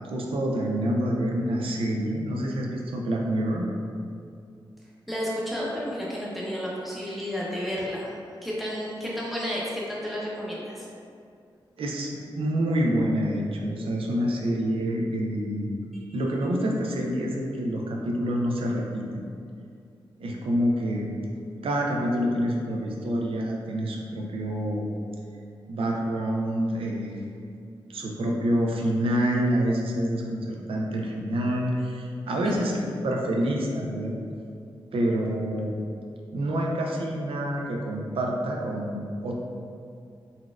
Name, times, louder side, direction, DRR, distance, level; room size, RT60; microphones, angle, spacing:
voice 1, 0.1-3.6 11.8-15.8 16.1-19.3 20.2-21.1 21.6-24.9 25.7-27.4 27.9-34.1 34.9-35.8 36.3-39.3, equal, 80° right, -1 dB, 0.4 m, -27 dB
voice 2, 5.1-8.1 8.4-10.9 15.9-16.0 32.4-32.7, equal, ahead, -6 dB, 0.6 m, -31 dB
3.9 x 2.3 x 2.3 m, 2.4 s
wide cardioid pair, 80°, 9 cm